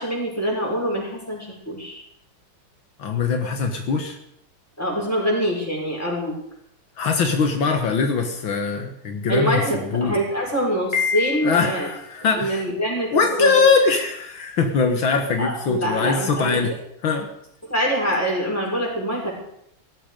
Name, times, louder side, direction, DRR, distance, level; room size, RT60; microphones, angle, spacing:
voice 1, 0.0-2.0 4.8-6.3 9.3-11.9 12.3-13.5 15.4-16.6 17.7-19.3, equal, 5° left, -3 dB, 6.4 m, -24 dB
voice 2, 3.0-4.2 7.0-9.6 9.9-10.2 11.4-12.6 13.1-16.8 17.0-17.3, left 5 dB, 75° left, 5 dB, 2.2 m, -21 dB
Piano, 10.9-12.0, left 6 dB, 45° left, 2.9 m, -26 dB
18.0 x 14.5 x 5.2 m, 0.73 s
omnidirectional pair, 2.2 m